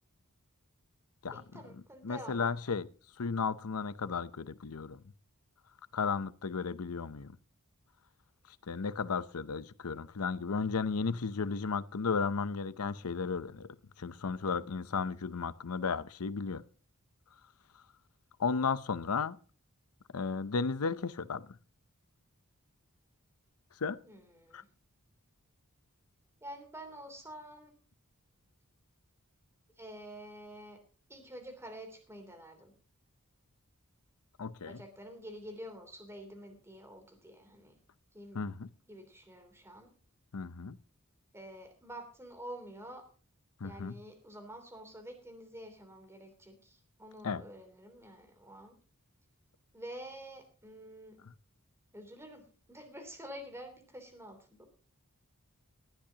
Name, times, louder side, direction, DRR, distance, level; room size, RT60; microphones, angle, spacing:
voice 1, 1.3-2.5 24.0-24.7 26.4-27.7 29.8-30.8 31.1-32.7 34.6-37.7 38.1-38.4 38.9-39.9 41.3-43.1 43.6-48.7 49.7-51.2 51.9-54.7, right 1 dB, 10° right, 3.1 m, -48 dB
voice 2, 2.0-2.9 3.2-5.0 5.9-7.4 8.7-13.7 14.0-16.6 18.4-19.4 20.1-21.5 23.8-24.0 24.5-24.6 34.4-34.8 38.3-38.7 40.3-40.8 43.6-43.9 47.2-47.4, left 5 dB, 80° left, 0.7 m, -34 dB
18.5 x 11.5 x 2.9 m
head